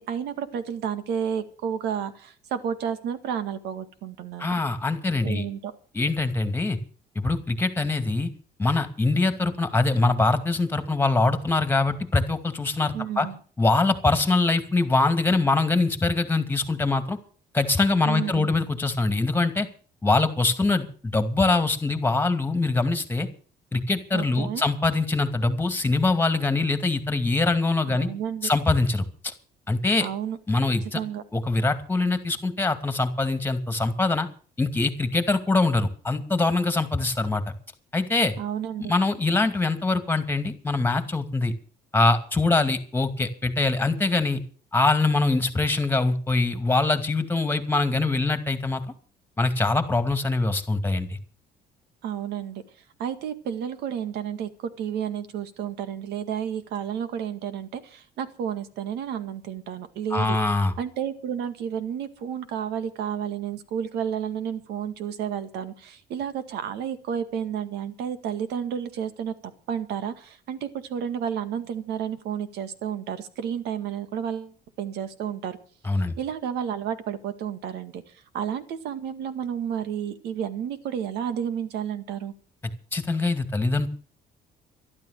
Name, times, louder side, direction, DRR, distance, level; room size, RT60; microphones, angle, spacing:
voice 1, 0.0-4.6 5.2-5.7 12.9-13.4 18.0-18.5 24.1-24.6 27.9-28.5 30.0-30.4 30.9-31.2 38.4-38.9 52.0-52.6 53.0-60.4 60.8-69.3 69.7-75.6 76.2-82.3, right 8 dB, 80° right, 11 dB, 2.0 m, -31 dB
voice 2, 4.4-5.4 5.9-6.8 7.2-8.3 8.6-13.3 13.6-17.2 17.5-19.7 20.0-23.3 23.7-28.1 28.4-29.3 29.7-30.1 30.5-31.0 31.3-34.3 34.6-37.5 37.9-38.3 38.8-41.5 41.9-44.4 44.7-48.8 49.4-51.1 60.1-60.7 75.8-76.1 82.9-83.9, left 3 dB, 10° left, 10 dB, 2.4 m, -23 dB
12.5 x 12.5 x 6.6 m, 0.41 s
cardioid pair, 110°, 17 cm